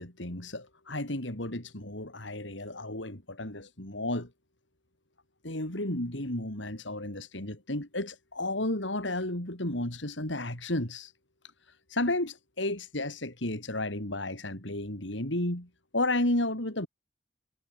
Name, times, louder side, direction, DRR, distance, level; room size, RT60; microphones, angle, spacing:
voice 1, 0.0-4.3 5.4-11.1 11.9-16.9, left 1 dB, 75° left, 4.7 m, -32 dB
head